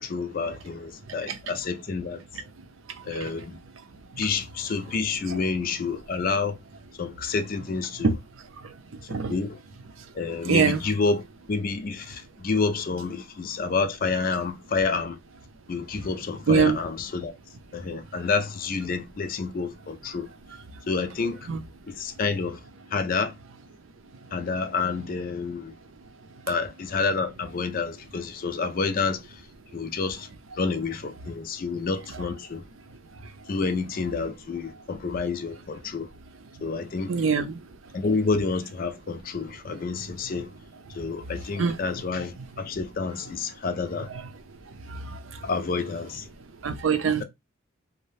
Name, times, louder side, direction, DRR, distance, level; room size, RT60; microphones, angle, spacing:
voice 1, 0.0-2.2 3.0-3.6 4.2-6.6 7.0-8.2 9.1-9.6 10.2-15.2 15.7-17.3 17.7-20.3 20.9-21.5 21.9-22.6 22.9-23.3 24.3-25.7 26.5-29.2 29.7-30.3 30.6-32.6 33.5-36.1 36.6-37.1 37.9-40.5 40.9-44.1 45.4-46.3, left 4 dB, 45° left, 0.4 m, -29 dB
voice 2, 10.5-10.8 16.5-16.8 21.5-21.6 37.1-37.6 41.6-41.8 46.6-47.2, right 5 dB, 75° right, 0.5 m, -22 dB
2.7 x 2.1 x 3.1 m
head